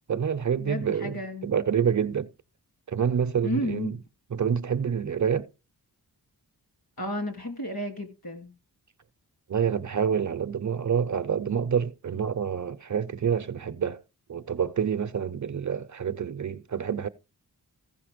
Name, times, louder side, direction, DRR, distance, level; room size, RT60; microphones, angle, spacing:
voice 1, 0.1-2.3 2.9-4.0 4.3-5.5 9.5-14.0 14.3-17.1, right 7 dB, 45° right, 0.6 m, -27 dB
voice 2, 0.6-1.5 3.4-3.9 7.0-8.5, left 1 dB, 65° left, 3.0 m, -32 dB
15.5 x 5.5 x 5.0 m
wide cardioid pair, 105°, 39 cm